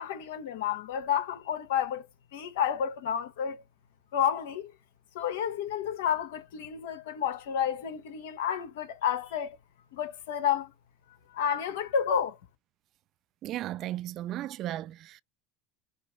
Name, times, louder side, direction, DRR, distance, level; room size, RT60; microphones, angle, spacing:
voice 1, 0.0-2.1 2.3-3.6 4.1-4.7 5.1-9.6 9.9-10.7 11.3-12.4, left 8 dB, 80° left, 1.0 m, -30 dB
voice 2, 13.4-15.2, right 13 dB, 55° right, 0.3 m, -35 dB
5.7 x 2.0 x 4.5 m
hypercardioid pair, 95°, 0 cm